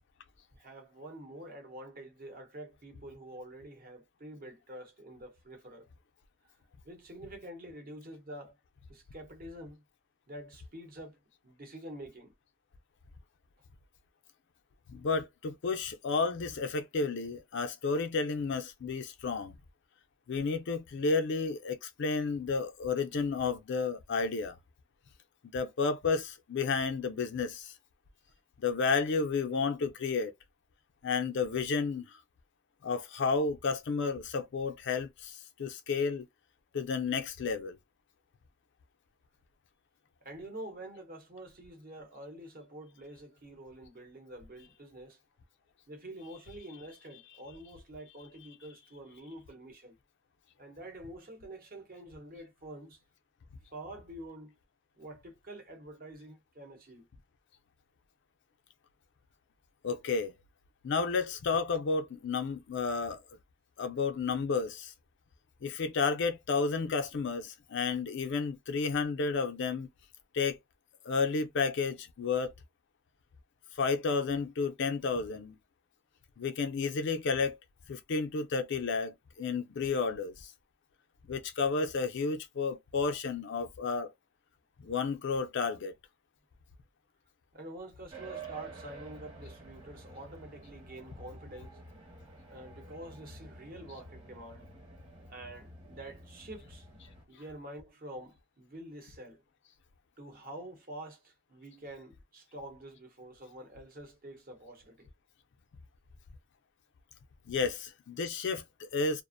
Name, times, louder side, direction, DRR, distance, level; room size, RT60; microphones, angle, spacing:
voice 1, 0.5-5.9 6.8-8.6 8.9-9.8 10.3-11.2 11.4-12.3 40.2-45.2 45.9-50.0 50.6-53.0 53.7-54.5 55.0-57.1 87.5-91.8 92.5-94.7 95.3-96.9 97.3-99.4 100.2-105.1, right 1 dB, 45° right, 0.9 m, -47 dB
voice 2, 14.9-19.6 20.3-24.6 25.5-27.7 28.6-30.3 31.0-32.2 32.8-36.3 36.7-37.8 59.8-60.3 60.8-63.2 63.8-64.9 65.6-69.9 70.3-70.6 71.0-72.5 73.8-75.6 76.4-77.6 77.9-80.5 81.3-84.1 84.8-85.9 107.5-109.2, left 4 dB, 60° left, 0.4 m, -31 dB
sound 1, 88.1-97.3, right 2 dB, 25° right, 1.1 m, -49 dB
2.4 x 2.0 x 2.5 m
head